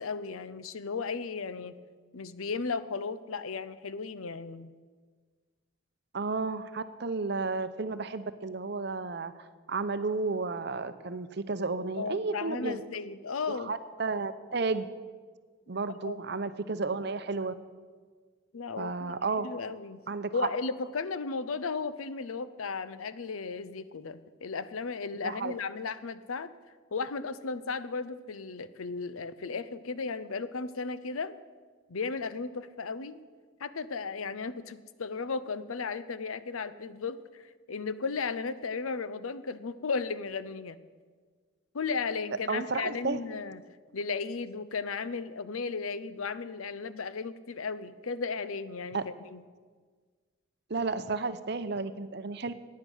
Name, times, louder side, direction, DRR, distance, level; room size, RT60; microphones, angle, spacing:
voice 1, 0.0-1.7 2.1-4.7 12.0-13.7 16.0-16.2 18.5-19.1 19.4-20.0 20.3-26.5 26.9-31.3 31.9-33.2 33.6-37.4 37.7-40.8 41.7-43.6 43.9-49.4, left 4 dB, 90° left, 14 dB, 0.6 m, -35 dB
voice 2, 6.1-12.8 13.5-14.9 15.7-17.5 18.8-19.5 20.1-20.3 25.2-25.5 42.5-43.2 48.9-49.0 50.7-52.5, right 3 dB, 55° right, 12 dB, 0.7 m, -32 dB
15.0 x 9.5 x 6.3 m, 1.5 s
head